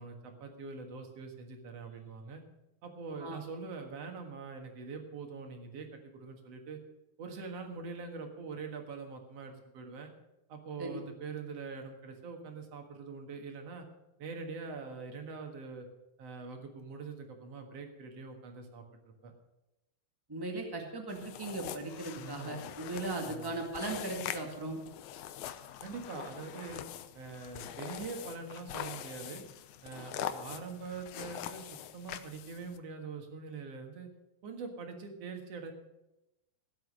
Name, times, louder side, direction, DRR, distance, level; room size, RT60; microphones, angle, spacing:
voice 1, 0.0-2.4 2.8-6.8 7.2-10.1 10.5-13.9 14.2-15.9 16.2-18.8 19.2-19.3 22.2-22.6 23.3-23.5 25.8-26.8 27.2-29.4 29.8-34.1 34.4-35.7, right 4 dB, 50° right, 4 dB, 2.3 m, -43 dB
voice 2, 20.3-24.8, right 2 dB, 15° right, 2 dB, 0.7 m, -38 dB
sound 1, 21.1-32.8, left 11 dB, 80° left, 1.7 m, -43 dB
16.5 x 8.0 x 6.5 m, 0.95 s
omnidirectional pair, 4.2 m